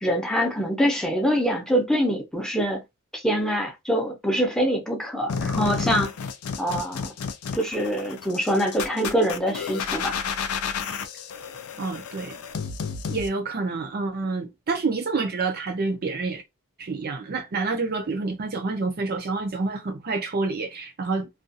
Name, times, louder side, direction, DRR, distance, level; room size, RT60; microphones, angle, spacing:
voice 1, 0.0-2.8 3.1-6.1 6.6-7.1 7.5-10.1, equal, 5° left, 0.6 m, -24 dB
sound 1, 5.3-13.3, left 6 dB, 85° left, 0.4 m, -31 dB
voice 2, 11.8-12.4 13.1-16.4 16.8-21.3, right 3 dB, 45° right, 0.5 m, -28 dB
2.4 x 2.2 x 2.6 m
head